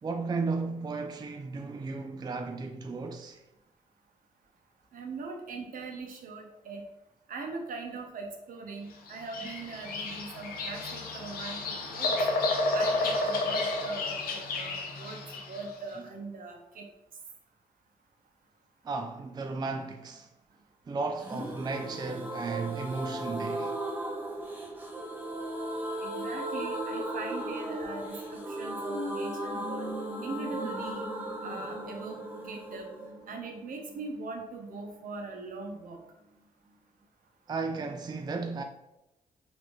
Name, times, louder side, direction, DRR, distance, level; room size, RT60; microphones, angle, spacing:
voice 1, 0.0-3.4 18.8-20.3 20.9-23.8 37.5-38.6, right 4 dB, 30° right, 0.3 m, -34 dB
voice 2, 4.9-6.8 7.3-12.2 12.7-15.2 15.5-16.9 26.0-29.9 30.2-31.1 31.4-32.2 32.4-32.9 33.3-36.0, right 3 dB, 70° right, 0.8 m, -41 dB
Bird vocalization bird call bird song, 9.1-15.7, left 2 dB, 85° left, 0.6 m, -31 dB
intensifying vocal harmony, 21.2-34.8 35.1-35.2 35.4-35.5, right 1 dB, 10° right, 0.9 m, -36 dB
4.2 x 2.6 x 3.0 m
cardioid pair, 65°, 15 cm